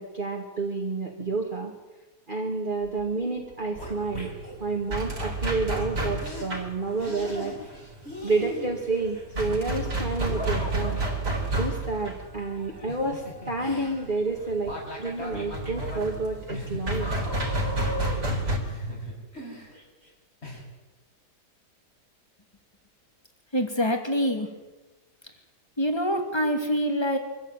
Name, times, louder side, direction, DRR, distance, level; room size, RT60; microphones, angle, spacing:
voice 1, 0.0-1.7 2.3-7.9 8.2-11.0 11.6-17.1, right 3 dB, 30° right, -1 dB, 2.4 m, -30 dB
sound 1, 2.8-3.1 3.4-4.6 5.8-5.9 6.2-6.5 7.0-11.4 12.5-20.1 20.4-20.6, left 1 dB, 40° left, 6.2 m, -38 dB
sound 2, 3.8-18.6, right 2 dB, 80° right, 4.6 m, -31 dB
voice 2, 23.5-24.5 25.8-27.2, equal, 15° left, 5 dB, 2.6 m, -25 dB
24.5 x 14.5 x 9.1 m, 1.2 s
omnidirectional pair, 1.8 m